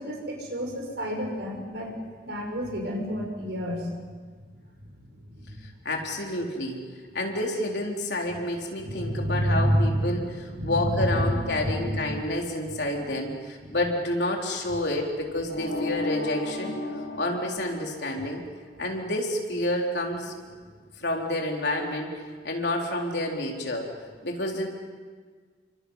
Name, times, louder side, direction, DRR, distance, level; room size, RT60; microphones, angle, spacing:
voice 1, 0.0-1.9 2.2-3.9 5.3-5.6 8.8-10.0 10.5-11.0 11.3-12.0, equal, 75° right, 1 dB, 5.9 m, -29 dB
voice 2, 5.8-16.8 17.2-18.4 18.8-20.3 21.0-23.9 24.2-24.7, left 1 dB, 75° left, 0 dB, 3.9 m, -29 dB
sound 1, 15.5-18.5, left 2 dB, 55° left, 5.9 m, -33 dB
29.0 x 25.0 x 5.6 m, 1.6 s
head